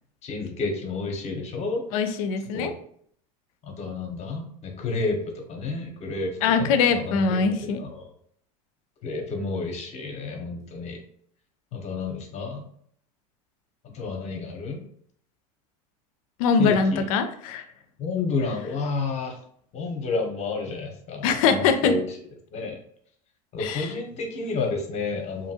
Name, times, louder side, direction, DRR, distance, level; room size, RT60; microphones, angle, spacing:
voice 1, 0.2-1.8 2.5-2.7 3.6-8.1 9.0-11.0 11.7-12.6 13.8-14.8 16.6-17.1 18.0-19.4 19.7-22.1 22.5-22.8 23.5-25.5, left 3 dB, 40° left, 3 dB, 0.8 m, -30 dB
voice 2, 1.9-2.7 6.4-7.8 16.4-17.6 21.2-22.0 23.6-23.9, left 5 dB, 75° left, 9 dB, 0.4 m, -22 dB
2.7 x 2.6 x 2.7 m, 0.63 s
supercardioid pair, 105°, 18 cm